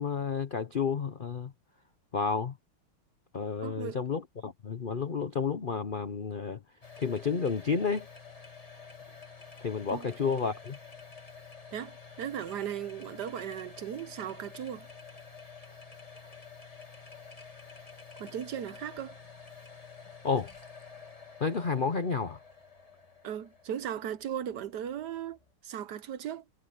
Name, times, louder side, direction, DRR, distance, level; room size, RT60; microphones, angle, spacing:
voice 1, 0.0-1.5 2.1-2.5 3.3-6.6 7.0-8.1 9.6-10.8 20.2-20.5 21.4-22.4, left 5 dB, 85° left, 0.4 m, -31 dB
voice 2, 3.6-4.0 9.9-10.1 11.7-14.9 18.2-19.1 23.2-25.4 25.6-26.4, right 9 dB, 65° right, 1.2 m, -37 dB
sound 1, 6.8-25.5, left 5 dB, 20° left, 1.6 m, -50 dB
omnidirectional pair, 2.3 m